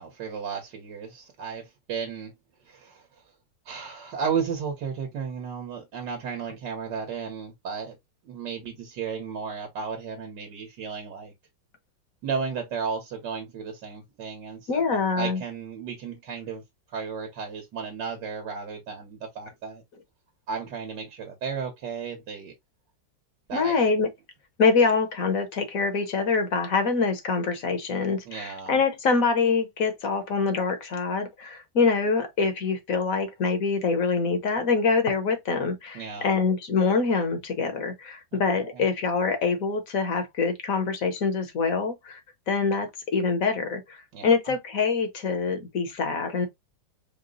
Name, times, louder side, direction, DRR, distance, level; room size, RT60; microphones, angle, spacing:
voice 1, 0.0-2.3 2.7-3.2 3.7-8.0 8.2-11.3 12.2-16.6 16.9-19.8 20.5-22.5 23.5-23.7 28.3-28.8 35.9-36.4 38.6-38.8 44.1-44.5, right 6 dB, 65° right, 1.7 m, -34 dB
voice 2, 14.7-15.4 23.5-24.1 24.6-42.2 42.5-44.0 44.2-46.5, left 4 dB, 55° left, 1.3 m, -25 dB
4.8 x 2.2 x 3.8 m
omnidirectional pair, 2.0 m